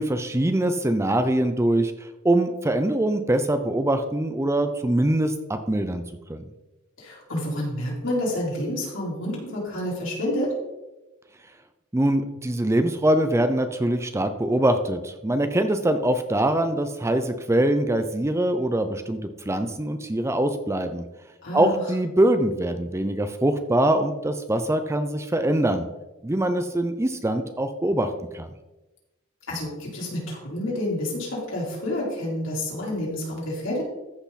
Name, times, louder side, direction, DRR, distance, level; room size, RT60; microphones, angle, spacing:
voice 1, 0.0-6.0 6.3-6.4 11.9-19.2 19.5-21.1 21.5-25.9 26.2-28.5, right 1 dB, 15° right, 8 dB, 0.5 m, -23 dB
voice 2, 7.0-10.5 21.4-21.8 29.5-33.8, left 1 dB, 60° left, -4 dB, 4.0 m, -29 dB
14.0 x 5.9 x 4.1 m, 1.0 s
head